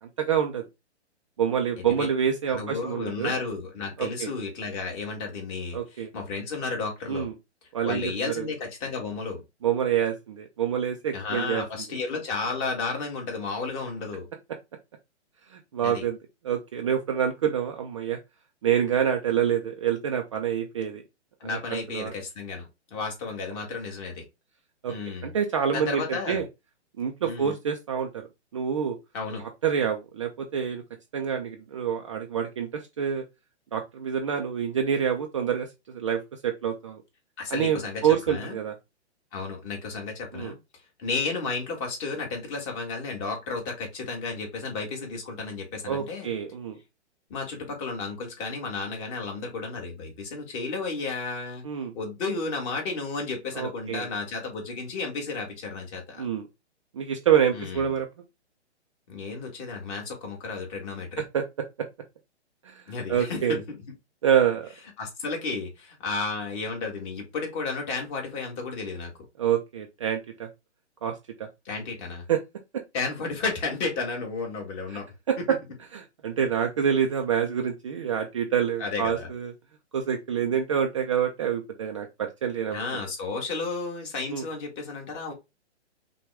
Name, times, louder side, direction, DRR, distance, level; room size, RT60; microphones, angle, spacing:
voice 1, 0.0-0.6 1.4-3.3 4.0-4.3 5.7-6.1 7.1-7.3 7.7-8.5 9.6-11.6 15.5-16.2 16.4-18.2 18.6-21.0 21.4-22.1 24.8-24.9 25.2-26.5 27.0-28.3 28.5-29.0 29.6-30.8 31.1-33.2 33.7-37.0 37.5-38.8 40.3-40.5 45.9-46.8 51.6-51.9 53.6-54.1 56.2-56.4 56.9-58.1 61.3-61.4 61.8-61.9 62.6-62.8 63.1-63.6 64.2-64.7 69.4-70.5 71.0-71.1 71.4-71.5 72.3-72.4 72.7-72.8 75.3-75.6 75.9-79.5 79.9-83.0 84.3-84.5, right 8 dB, 30° right, 3 dB, 0.4 m, -27 dB
voice 2, 2.5-7.3 7.8-9.4 11.1-14.3 15.8-16.0 21.4-24.2 24.9-25.3 25.7-26.4 27.2-27.5 29.1-29.4 37.4-38.6 39.3-40.6 41.0-46.3 47.3-51.6 51.9-56.3 57.5-57.8 59.1-61.2 62.9-63.6 65.0-69.1 71.6-72.2 72.9-75.1 78.8-79.3 82.7-85.3, left 4 dB, 30° left, 2 dB, 1.6 m, -33 dB
5.8 x 2.3 x 3.4 m, 0.23 s
hypercardioid pair, 145°, 35 cm